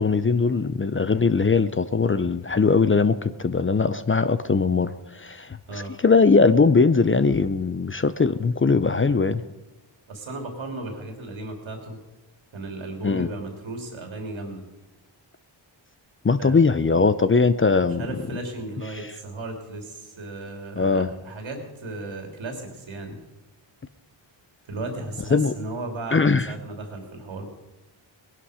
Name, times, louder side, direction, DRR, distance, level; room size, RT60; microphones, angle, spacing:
voice 1, 0.0-9.4 13.0-13.3 16.2-18.1 18.9-19.0 20.8-21.1 25.3-25.5 26.1-26.5, left 4 dB, 25° left, 0.6 m, -20 dB
voice 2, 10.1-12.0 12.5-14.6 16.4-16.6 18.0-23.2 24.7-27.4, right 2 dB, 80° right, 3.1 m, -35 dB
19.0 x 11.0 x 5.0 m
cardioid pair, 75°, 46 cm